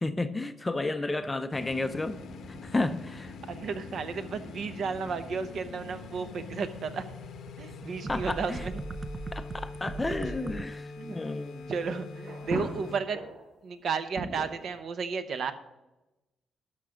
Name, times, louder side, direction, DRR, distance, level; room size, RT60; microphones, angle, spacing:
voice 1, 0.0-2.2 2.5-3.3 8.1-8.6 9.3-11.7, left 2 dB, 15° left, 10 dB, 0.5 m, -32 dB
sound 1, 1.5-13.1, left 3 dB, 80° left, 0.9 m, -44 dB
sound 2, 1.6-10.6, right 3 dB, 35° right, 0.5 m, -41 dB
voice 2, 3.5-7.1 7.6-8.7 11.0-11.2 11.7-13.2 13.6-15.5, right 5 dB, 60° right, 9 dB, 0.9 m, -33 dB
sound 3, 8.2-13.6 14.0-14.8, right 2 dB, 75° right, 4.3 m, -41 dB
12.5 x 5.9 x 5.0 m, 0.99 s
cardioid pair, 140°, 0 cm